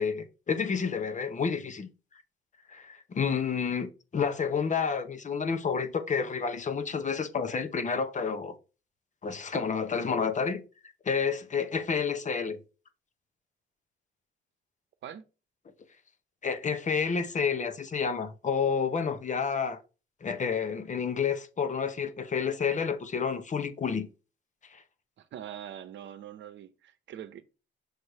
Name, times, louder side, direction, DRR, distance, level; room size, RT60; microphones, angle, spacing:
voice 1, 0.0-1.9 2.7-8.6 9.2-10.6 11.0-12.6 16.4-19.8 20.2-24.1 24.7-24.8, left 6 dB, 40° left, 0.9 m, -30 dB
voice 2, 25.2-27.4, right 10 dB, 65° right, 0.8 m, -43 dB
6.5 x 3.2 x 5.4 m
cardioid pair, 90°, 20 cm